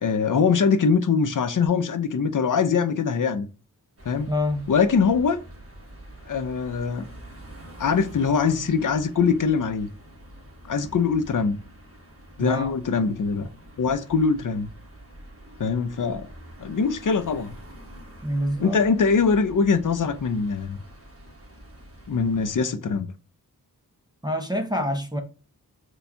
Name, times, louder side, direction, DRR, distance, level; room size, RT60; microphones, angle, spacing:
voice 1, 0.0-3.5 4.1-4.3 4.7-5.4 6.3-7.0 7.8-9.9 10.7-11.6 12.4-13.5 13.8-14.7 15.6-16.3 16.6-17.6 18.6-20.8 22.1-23.1, left 5 dB, 55° left, 0.5 m, -22 dB
sound 1, 4.0-22.6, right 1 dB, 35° right, 1.2 m, -46 dB
voice 2, 4.3-4.7 12.4-12.8 18.2-18.9 24.2-25.2, equal, 10° right, 0.5 m, -26 dB
4.2 x 2.3 x 2.7 m
wide cardioid pair, 60°, 37 cm